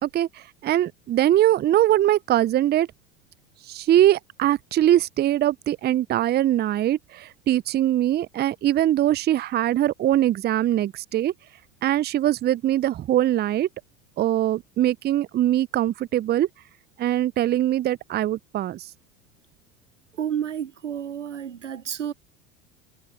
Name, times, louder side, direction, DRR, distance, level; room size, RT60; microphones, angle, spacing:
voice 1, 0.0-2.9 3.7-11.3 11.8-13.7 14.2-16.5 17.0-18.9, right 12 dB, 30° right, 0.6 m, -22 dB
voice 2, 20.2-22.1, right 9 dB, 85° right, 1.1 m, -30 dB
hypercardioid pair, 75°, 36 cm